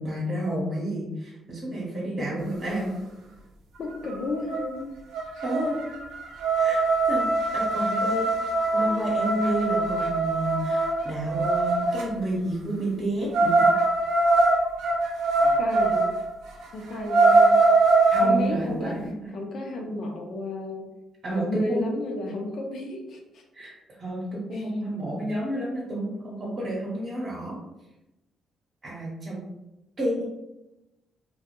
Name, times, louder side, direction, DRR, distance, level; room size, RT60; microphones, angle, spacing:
voice 1, 0.0-2.9 5.4-5.8 6.6-8.3 8.7-13.6 18.1-19.3 21.2-21.9 23.5-27.6 28.8-29.4 30.0-30.2, right 1 dB, 45° right, -6 dB, 0.8 m, -30 dB
voice 2, 2.2-2.5 3.8-4.9 15.6-16.1 16.7-17.6 18.2-19.0 19.3-20.8 21.3-23.4 24.5-24.6, left 2 dB, 60° left, 1 dB, 0.5 m, -32 dB
sound 1, 4.1-4.2 4.5-4.8 5.1-12.0 13.3-16.1 16.5-16.6 17.0-18.3, right 3 dB, 85° right, 0.4 m, -22 dB
2.2 x 2.1 x 2.9 m, 0.96 s
cardioid pair, 90°, 0 cm